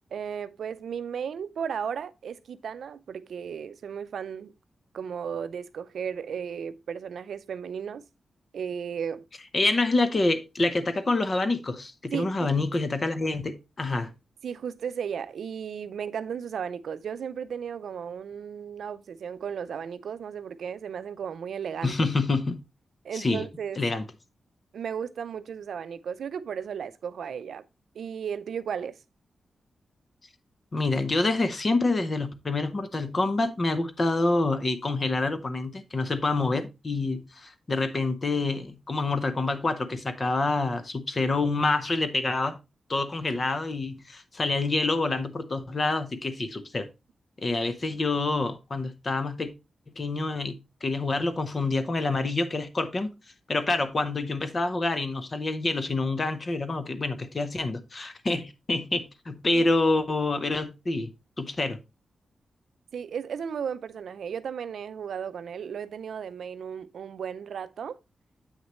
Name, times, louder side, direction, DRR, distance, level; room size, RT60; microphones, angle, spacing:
voice 1, 0.1-4.5 4.9-8.0 8.5-9.3 12.1-12.7 14.4-21.9 23.0-23.8 24.7-27.6 27.9-29.0 59.5-59.6 62.9-68.0, right 7 dB, 75° right, 0.5 m, -35 dB
voice 2, 9.5-14.1 21.8-22.6 23.1-23.4 23.8-24.0 30.7-42.6 42.9-46.9 47.4-49.5 50.0-53.1 53.5-61.1 61.4-61.8, left 2 dB, 30° left, 0.7 m, -27 dB
8.1 x 6.3 x 2.9 m
wide cardioid pair, 175°, 0 cm